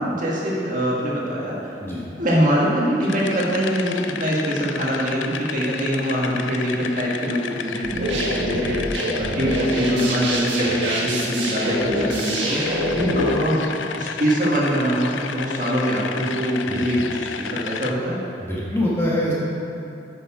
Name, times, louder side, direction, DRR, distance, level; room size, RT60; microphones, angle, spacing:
voice 1, 0.0-1.7 2.2-12.6 12.9-18.2, equal, 45° right, -5 dB, 1.6 m, -23 dB
sound 1, 3.0-17.9, left 7 dB, 90° left, 0.4 m, -33 dB
sound 2, 7.8-13.3, equal, 90° right, 1.6 m, -25 dB
voice 2, 18.4-19.3, left 1 dB, 15° left, -6 dB, 1.4 m, -24 dB
8.5 x 6.8 x 4.9 m, 2.7 s
head